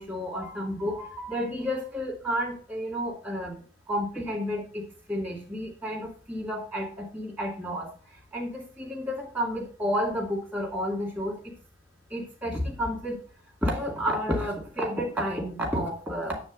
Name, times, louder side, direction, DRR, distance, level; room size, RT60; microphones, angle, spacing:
voice 1, 0.0-11.5 12.1-13.2 13.6-16.4, equal, 10° right, -2 dB, 2.3 m, -31 dB
9.4 x 3.4 x 5.4 m, 0.41 s
head